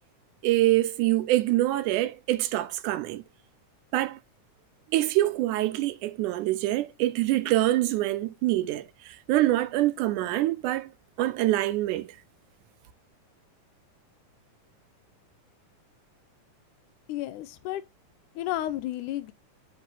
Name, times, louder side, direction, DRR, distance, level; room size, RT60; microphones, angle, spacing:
voice 1, 0.4-3.2 3.9-4.2 4.9-10.9 11.2-12.1, right 15 dB, 80° right, 2.0 m, -25 dB
voice 2, 17.1-17.8 18.4-19.3, left 14 dB, 80° left, 2.0 m, -32 dB
7.4 x 3.2 x 5.9 m
omnidirectional pair, 3.7 m